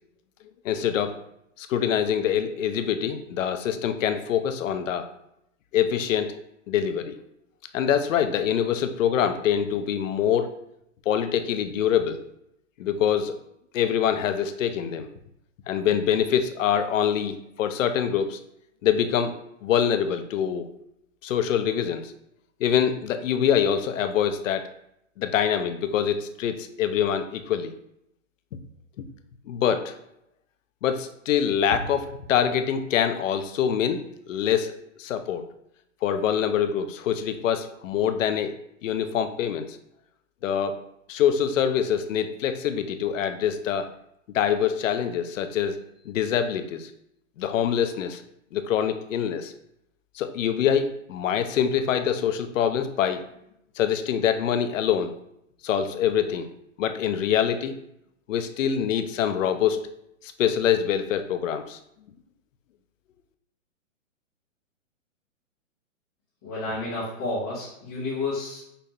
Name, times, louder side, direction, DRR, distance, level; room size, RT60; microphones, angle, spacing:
voice 1, 0.6-1.1 1.6-5.1 5.7-6.3 6.7-7.2 7.7-10.5 11.1-12.2 12.8-13.3 13.7-15.1 15.7-18.4 18.8-19.3 19.6-20.7 21.2-22.1 22.6-24.7 25.2-27.7 29.5-29.9 30.8-34.7 35.0-35.4 36.0-38.5 38.8-39.8 40.4-40.8 41.1-43.9 44.3-45.8 46.1-46.9 47.4-48.2 48.5-49.5 50.2-53.2 53.8-55.1 55.6-56.5 56.8-57.7 58.3-59.8 60.4-61.8, left 9 dB, 70° left, 9 dB, 0.5 m, -24 dB
voice 2, 66.4-68.6, left 2 dB, 15° left, -10 dB, 0.4 m, -30 dB
5.3 x 2.1 x 2.7 m, 0.78 s
hypercardioid pair, 145°, 40 cm